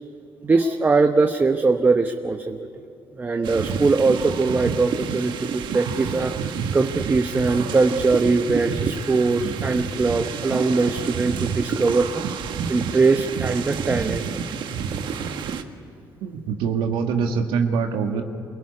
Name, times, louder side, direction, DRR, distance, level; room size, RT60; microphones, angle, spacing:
voice 1, 0.4-2.7 3.2-6.3 6.7-12.2 12.7-14.3, right 3 dB, 20° right, 6 dB, 0.9 m, -21 dB
sound 1, 3.4-15.6, right 6 dB, 65° right, 1.5 m, -29 dB
voice 2, 16.2-18.2, right 6 dB, 90° right, 3 dB, 2.0 m, -24 dB
27.5 x 17.5 x 9.8 m, 2.6 s
cardioid pair, 120°, 9 cm